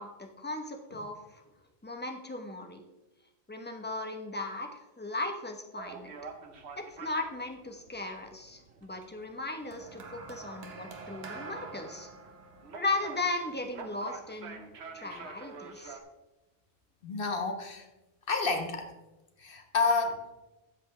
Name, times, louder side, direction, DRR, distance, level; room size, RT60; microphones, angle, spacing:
voice 1, 0.0-1.4 1.8-2.8 3.5-6.1 6.8-12.1 12.8-14.6 14.9-16.0, left 2 dB, 10° left, 4 dB, 0.9 m, -37 dB
sound 1, 5.8-16.0, right 4 dB, 90° right, 1.2 m, -48 dB
sound 2, 9.7-14.1 15.1-15.3, right 3 dB, 75° right, 1.5 m, -46 dB
voice 2, 17.0-17.9 18.3-18.9 19.4-20.2, left 4 dB, 60° left, 4 dB, 1.4 m, -29 dB
13.0 x 7.8 x 3.3 m, 1.0 s
omnidirectional pair, 1.1 m